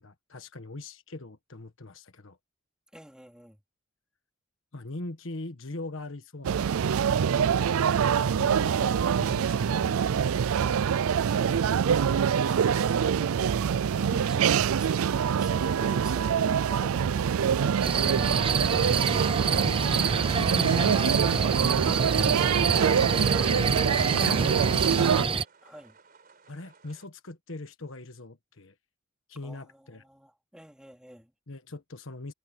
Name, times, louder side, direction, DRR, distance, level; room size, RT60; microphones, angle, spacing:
voice 1, 0.0-2.4 4.7-6.9 7.2-7.5 8.2-10.4 19.5-21.7 23.5-25.2 26.5-28.7 29.3-30.0 31.5-32.3, left 2 dB, 65° left, 1.4 m, -41 dB
voice 2, 2.9-3.6 25.6-26.0 29.4-31.3, equal, 5° right, 3.8 m, -48 dB
sound 1, 6.4-25.3, right 7 dB, 85° right, 0.4 m, -25 dB
sound 2, 17.8-25.4, right 5 dB, 25° right, 0.7 m, -27 dB
sound 3, 17.8-27.1, right 5 dB, 45° right, 4.2 m, -58 dB
head